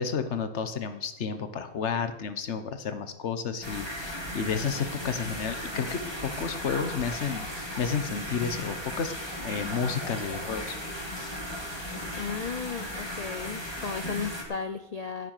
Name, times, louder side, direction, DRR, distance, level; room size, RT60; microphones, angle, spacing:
voice 1, 0.0-9.1 9.4-10.8, left 6 dB, 55° left, 10 dB, 1.2 m, -31 dB
sound 1, 3.6-14.4, equal, 15° left, 2.4 m, -36 dB
voice 2, 12.1-15.3, left 5 dB, 80° left, 9 dB, 0.3 m, -35 dB
15.5 x 6.7 x 6.7 m, 0.91 s
omnidirectional pair, 1.5 m